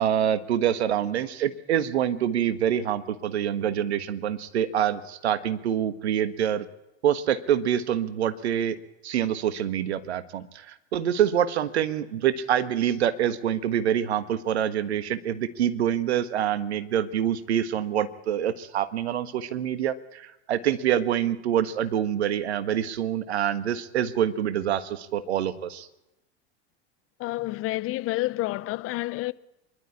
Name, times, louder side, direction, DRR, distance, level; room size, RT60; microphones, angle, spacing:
voice 1, 0.0-6.6 7.0-8.8 9.0-25.9, right 10 dB, 80° right, 1.5 m, -26 dB
voice 2, 27.2-29.3, left 18 dB, 40° left, 0.9 m, -29 dB
24.5 x 12.0 x 10.0 m
hypercardioid pair, 95°, 32 cm